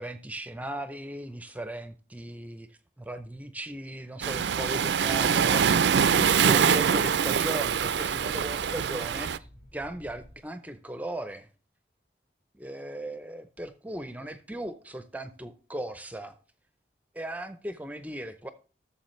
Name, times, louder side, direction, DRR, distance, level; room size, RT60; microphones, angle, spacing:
voice 1, 0.0-5.7 6.1-9.3 9.7-11.5 12.6-16.4 17.1-18.5, right 1 dB, 10° right, 0.5 m, -37 dB
Waves surf, 4.2-9.4, right 7 dB, 80° right, 0.4 m, -24 dB
sound 1, 5.3-10.4, equal, 65° left, 2.1 m, -51 dB
13.0 x 7.1 x 3.1 m
head